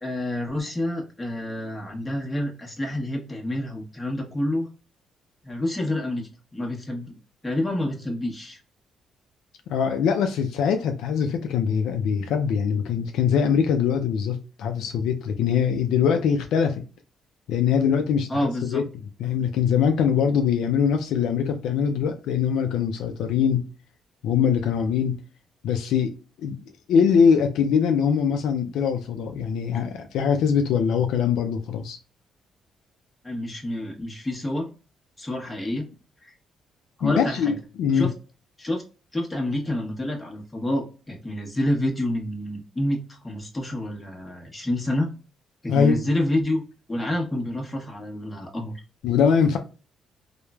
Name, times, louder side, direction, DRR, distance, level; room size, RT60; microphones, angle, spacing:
voice 1, 0.0-4.7 5.4-7.1 7.4-8.6 18.3-18.8 33.2-34.7 35.2-35.9 36.2-36.3 37.0-37.5 37.9-38.1 38.6-38.8 39.1-45.1 45.6-46.6 46.9-48.7, left 1 dB, 15° left, 0.8 m, -28 dB
voice 2, 9.7-16.8 17.5-18.8 19.2-23.6 24.2-25.2 25.6-26.6 26.9-32.0 37.0-38.1 45.7-46.0 49.0-49.6, left 7 dB, 85° left, 0.3 m, -22 dB
3.0 x 2.0 x 2.2 m
cardioid pair, 90°, 0 cm